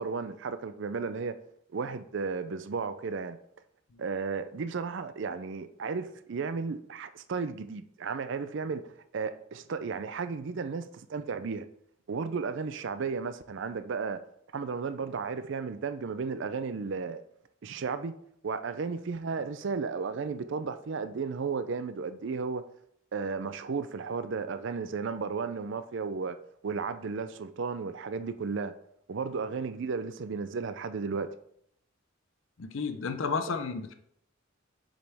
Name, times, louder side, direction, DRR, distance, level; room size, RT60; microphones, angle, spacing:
voice 1, 0.0-1.4 1.7-3.4 4.0-11.7 12.1-14.2 14.5-17.2 17.6-18.1 18.4-22.6 23.1-26.4 26.6-28.7 29.1-31.3, right 5 dB, 60° right, 0.4 m, -34 dB
voice 2, 32.6-33.9, left 5 dB, 65° left, 0.6 m, -32 dB
7.4 x 5.2 x 3.4 m
head